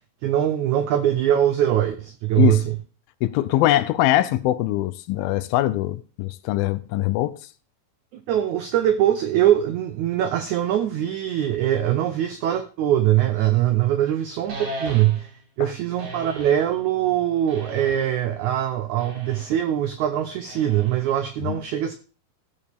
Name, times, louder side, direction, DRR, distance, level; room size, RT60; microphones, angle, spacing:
voice 1, 0.2-2.8 8.1-15.3 15.6-21.9, right 11 dB, 85° right, 1.6 m, -22 dB
voice 2, 3.2-7.4 15.6-15.7 21.5-21.6, left 14 dB, 80° left, 2.3 m, -22 dB
sound 1, 14.5-15.4 16.0-16.7 17.5-18.2 19.0-19.6 20.5-21.2, right 1 dB, 60° right, 4.3 m, -37 dB
16.0 x 7.1 x 3.5 m
omnidirectional pair, 4.4 m